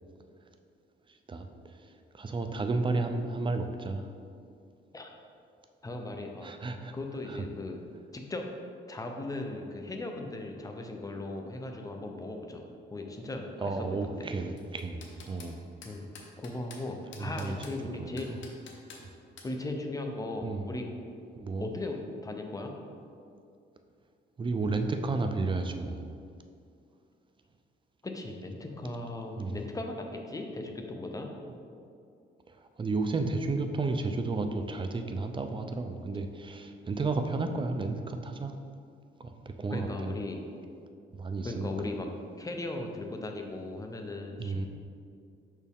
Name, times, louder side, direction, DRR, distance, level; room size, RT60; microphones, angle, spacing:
voice 1, 1.8-4.1 6.4-6.9 7.3-7.4 13.6-15.0 15.3-15.6 17.2-17.6 18.0-18.4 20.4-20.6 21.4-21.7 24.4-26.1 29.4-29.6 32.8-38.5 39.2-39.3 39.6-40.1 41.1-41.7 44.4-44.6, right 3 dB, 25° right, 6 dB, 0.5 m, -32 dB
voice 2, 5.8-6.5 6.9-7.8 8.1-8.5 8.9-12.6 12.9-14.3 15.8-18.3 19.4-20.9 21.6-22.8 28.0-31.3 39.7-40.4 41.4-42.1 42.4-44.7, left 2 dB, 15° left, 3 dB, 0.7 m, -37 dB
sound 1, 14.6-15.5 15.8-16.8 17.1-17.8 18.2-19.0 19.4-19.5, left 5 dB, 70° left, 0.9 m, -48 dB
5.8 x 4.6 x 3.6 m, 2.4 s
cardioid pair, 90°, 20 cm